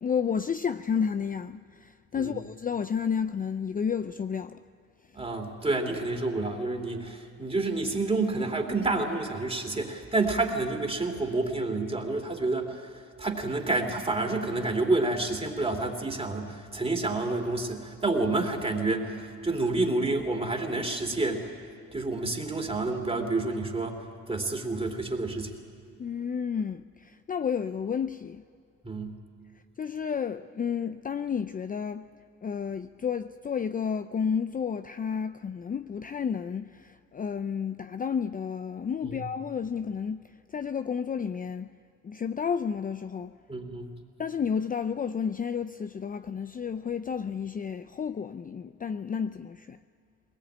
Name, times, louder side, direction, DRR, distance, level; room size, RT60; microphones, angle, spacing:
voice 1, 0.0-4.6 26.0-28.4 29.8-32.1 32.4-41.7 42.0-43.3 44.2-49.8, left 7 dB, 30° left, 0.5 m, -31 dB
voice 2, 5.1-12.9 13.2-21.5 21.9-24.0 24.3-25.5 28.8-29.1 39.0-39.2 43.5-43.9, right 2 dB, 20° right, 2.9 m, -29 dB
21.0 x 19.5 x 8.7 m
cardioid pair, 90°, 30 cm